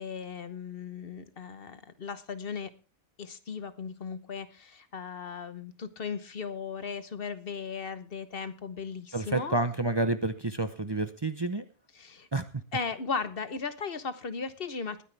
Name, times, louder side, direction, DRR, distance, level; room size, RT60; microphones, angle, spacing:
voice 1, 0.0-2.7 3.2-9.5 11.9-12.3 12.7-15.0, left 5 dB, 60° left, 12 dB, 1.2 m, -37 dB
voice 2, 9.1-11.7 12.3-12.4, right 2 dB, 25° right, 10 dB, 0.7 m, -29 dB
21.0 x 9.9 x 3.4 m, 0.33 s
omnidirectional pair, 1.1 m